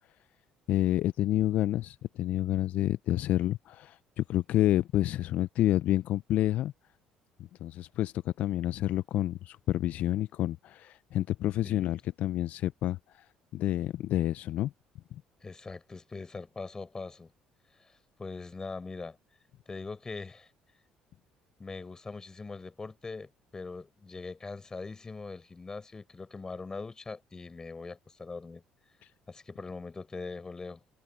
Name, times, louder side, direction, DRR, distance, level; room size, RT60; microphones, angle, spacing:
voice 1, 0.7-6.7 7.6-13.2 13.5-14.7 15.1-15.2, left 13 dB, 70° left, 0.4 m, -29 dB
voice 2, 11.6-12.0 15.4-17.3 17.8-17.9 18.2-19.2 19.7-20.5 21.6-28.6 29.3-30.8, left 4 dB, 25° left, 5.5 m, -41 dB
cardioid pair, 90°, 3 cm